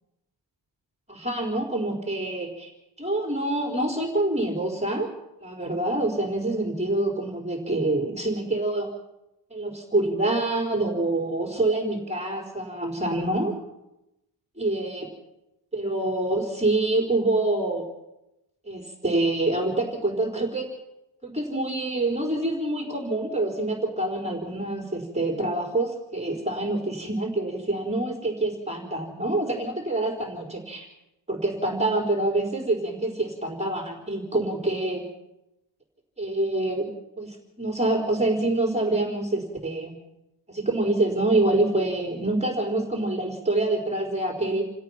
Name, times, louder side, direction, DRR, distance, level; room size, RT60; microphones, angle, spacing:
voice 1, 1.1-2.7 3.0-5.1 5.4-8.9 9.5-13.5 14.6-15.1 15.7-17.8 18.6-20.7 21.2-30.9 31.3-35.0 36.2-36.9 37.2-39.9 40.5-44.7, right 2 dB, 15° right, 0 dB, 4.3 m, -26 dB
29.0 x 17.0 x 5.9 m, 0.91 s
wide cardioid pair, 115°, 45 cm